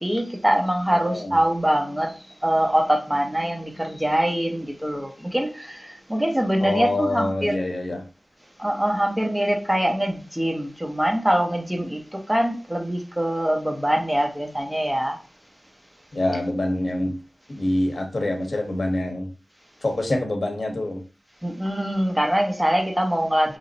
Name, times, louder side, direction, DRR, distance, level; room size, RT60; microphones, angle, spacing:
voice 1, 0.0-7.5 8.6-15.2 21.4-23.6, equal, 10° right, 0.8 m, -23 dB
voice 2, 0.9-1.4 6.6-8.0 16.1-17.2 17.5-19.3 19.8-21.0, left 1 dB, 70° left, 0.8 m, -26 dB
2.9 x 2.0 x 3.9 m
cardioid pair, 45°, 0 cm